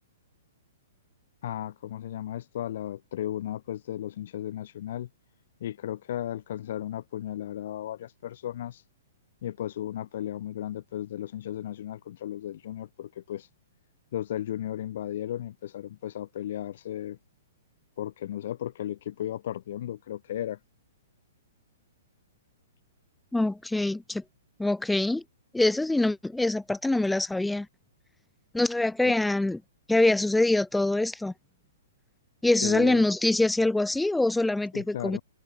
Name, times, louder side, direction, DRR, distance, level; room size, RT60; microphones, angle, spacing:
voice 1, 1.4-5.1 5.6-8.8 9.4-13.5 14.1-17.2 18.0-20.6 29.0-29.1 32.6-33.0 34.7-35.2, left 11 dB, 60° left, 6.9 m, -35 dB
voice 2, 23.3-24.2 24.6-25.2 25.5-27.7 28.5-29.6 29.9-31.3 32.4-35.2, left 2 dB, 5° left, 3.0 m, -24 dB
hypercardioid pair, 120°, 0 cm